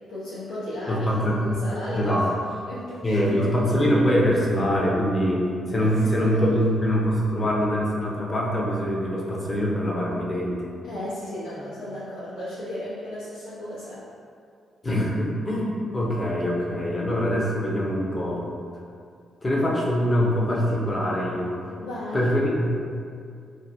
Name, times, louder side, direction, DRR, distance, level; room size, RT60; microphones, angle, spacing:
voice 1, 0.1-2.4 2.7-3.5 3.8-3.9 5.8-6.6 10.8-14.0 21.8-22.3, left 1 dB, 80° left, -13 dB, 0.7 m, -34 dB
voice 2, 0.9-1.4 1.9-2.3 3.0-10.7 14.8-18.4 19.4-21.7 22.1-22.8, equal, 30° left, -4 dB, 0.8 m, -24 dB
3.4 x 2.2 x 2.8 m, 2.3 s
hypercardioid pair, 45°, 0 cm